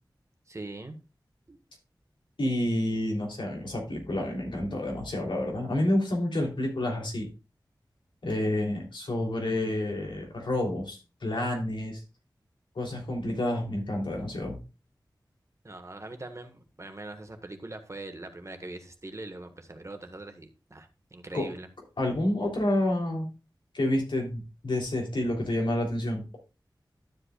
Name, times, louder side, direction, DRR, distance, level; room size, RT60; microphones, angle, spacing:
voice 1, 0.5-1.0 1.5-1.6 15.6-21.7, right 2 dB, 40° right, 6 dB, 1.5 m, -42 dB
voice 2, 2.4-7.3 8.2-12.0 12.7-14.6 21.3-21.5 22.0-23.3 23.7-26.4, left 1 dB, 90° left, 0 dB, 3.3 m, -29 dB
12.0 x 7.8 x 2.4 m, 0.30 s
wide cardioid pair, 70°, 8 cm